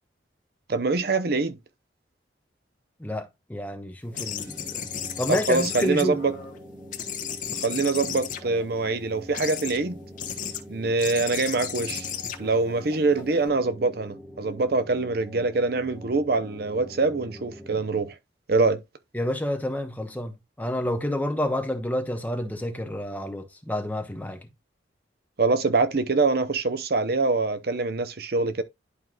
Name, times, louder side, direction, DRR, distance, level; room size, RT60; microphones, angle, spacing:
voice 1, 0.7-1.6 5.3-6.3 7.6-10.0 10.7-12.1 12.4-18.2 18.5-18.8 25.4-28.6, right 3 dB, 60° right, 0.7 m, -24 dB
voice 2, 3.0-4.9 5.2-6.2 19.1-24.4, left 1 dB, 10° left, 1.0 m, -29 dB
sound 1, 4.1-6.6 6.9-8.9 9.3-9.8 10.2-10.6 11.0-13.5, left 8 dB, 45° left, 1.2 m, -34 dB
sound 2, 4.1-18.1, equal, 15° right, 1.8 m, -44 dB
11.0 x 4.6 x 2.4 m
head